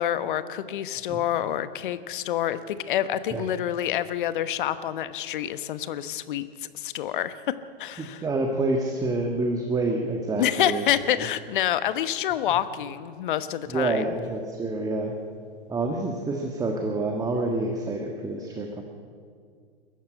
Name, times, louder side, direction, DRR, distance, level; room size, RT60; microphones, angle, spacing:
voice 1, 0.0-6.5 6.7-8.2 10.4-14.1, left 11 dB, 55° left, 13 dB, 1.2 m, -27 dB
voice 2, 8.0-10.8 11.1-11.2 12.5-12.6 13.7-15.1 15.7-18.8, right 2 dB, 10° right, 2 dB, 1.7 m, -27 dB
21.5 x 13.5 x 9.6 m, 2.2 s
figure-of-eight pair, 110°, 31 cm